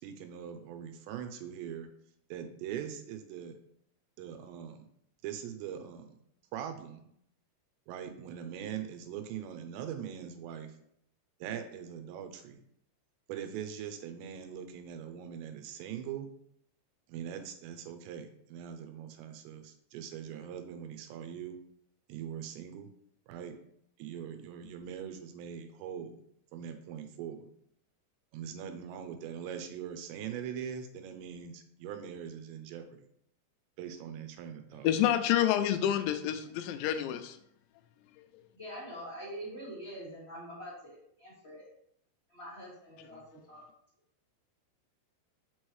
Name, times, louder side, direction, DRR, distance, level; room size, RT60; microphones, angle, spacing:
voice 1, 0.0-1.9 2.3-3.6 4.2-4.8 5.2-6.2 6.5-7.0 7.9-10.8 11.4-12.6 13.3-16.3 17.1-21.6 22.1-22.9 23.3-23.6 24.0-26.2 26.5-27.5 28.3-32.9 33.8-34.9, right 8 dB, 80° right, 7 dB, 2.8 m, -42 dB
voice 2, 34.8-37.4, left 11 dB, 85° left, 9 dB, 2.8 m, -28 dB
voice 3, 38.5-41.7 42.3-43.6, equal, 25° left, -9 dB, 1.6 m, -45 dB
6.3 x 5.2 x 3.1 m, 0.70 s
omnidirectional pair, 5.1 m